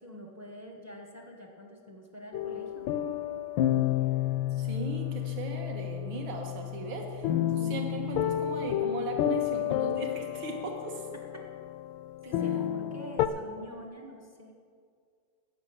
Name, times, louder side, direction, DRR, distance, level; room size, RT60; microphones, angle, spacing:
voice 1, 0.0-2.9 11.0-11.5 12.2-14.5, equal, 15° right, 1 dB, 0.6 m, -46 dB
sound 1, 2.3-13.3, left 12 dB, 75° left, 1.2 m, -31 dB
voice 2, 4.6-11.0, right 4 dB, 70° right, 2 dB, 2.2 m, -38 dB
13.5 x 5.9 x 8.7 m, 2.1 s
omnidirectional pair, 2.3 m